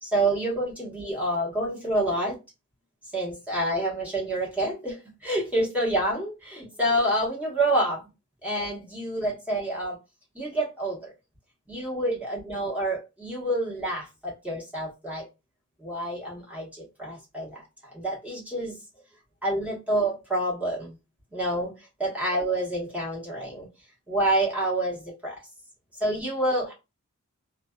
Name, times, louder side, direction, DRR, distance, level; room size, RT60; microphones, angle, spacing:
voice 1, 0.0-2.4 3.1-8.1 8.4-10.0 10.3-11.1 11.7-15.3 15.8-17.6 17.9-18.8 19.4-20.9 21.3-21.7 22.0-23.7 24.1-25.4 25.9-26.7, right 1 dB, 5° right, -5 dB, 1.1 m, -28 dB
2.4 x 2.3 x 2.2 m, 0.26 s
head